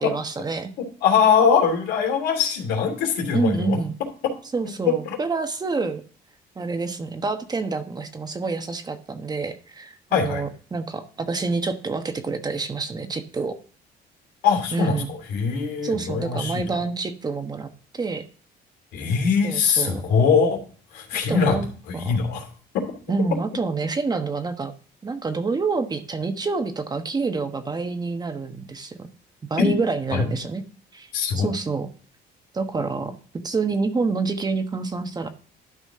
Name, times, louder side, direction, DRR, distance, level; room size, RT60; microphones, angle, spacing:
voice 1, 0.0-0.7 3.3-3.9 4.5-6.0 6.5-13.6 14.7-15.1 15.8-18.2 19.4-20.0 21.3-21.7 21.9-22.2 23.1-24.7 25.0-29.1 29.5-30.6 30.9-31.1 31.3-31.9 32.5-33.2 33.4-35.3, right 4 dB, 25° right, 7 dB, 1.1 m, -27 dB
voice 2, 1.0-3.8 5.1-5.2 5.8-5.9 10.1-10.4 14.4-16.8 18.9-20.6 20.9-21.6 21.9-22.5 22.7-22.8 29.6-29.7 30.1-30.2 31.1-31.5, left 6 dB, 90° left, 3 dB, 2.8 m, -22 dB
12.0 x 5.0 x 3.7 m, 0.42 s
cardioid pair, 110°, 17 cm